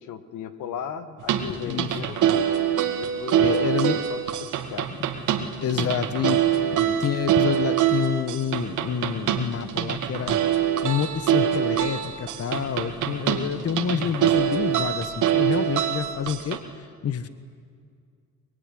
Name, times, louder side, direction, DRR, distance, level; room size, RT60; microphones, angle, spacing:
voice 1, 0.0-4.9, left 8 dB, 85° left, 10 dB, 1.7 m, -37 dB
sound 1, 1.2-16.6, right 10 dB, 85° right, 2.1 m, -24 dB
voice 2, 1.6-2.0 3.4-4.0 5.6-10.4 10.8-17.3, left 8 dB, 50° left, 12 dB, 1.4 m, -28 dB
23.0 x 22.0 x 10.0 m, 2.1 s
cardioid pair, 90°, 30 cm